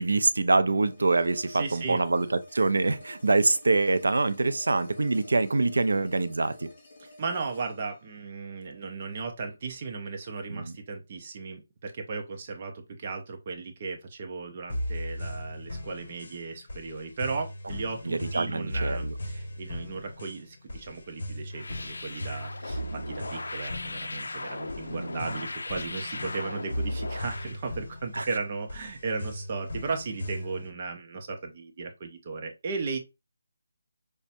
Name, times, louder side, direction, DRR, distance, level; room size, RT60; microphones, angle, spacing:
voice 1, 0.0-6.7 10.5-10.8 18.0-19.1 24.9-25.2 28.1-28.3, right 3 dB, 90° right, 0.5 m, -25 dB
sound 1, 0.8-9.8, left 1 dB, 25° left, 2.1 m, -52 dB
voice 2, 1.5-2.0 7.0-33.0, right 4 dB, 30° right, 0.6 m, -36 dB
sound 2, 14.7-30.7, equal, 55° left, 1.3 m, -37 dB
sound 3, 21.5-27.6, left 2 dB, 85° left, 0.4 m, -38 dB
5.5 x 2.2 x 2.6 m
hypercardioid pair, 175°, 0 cm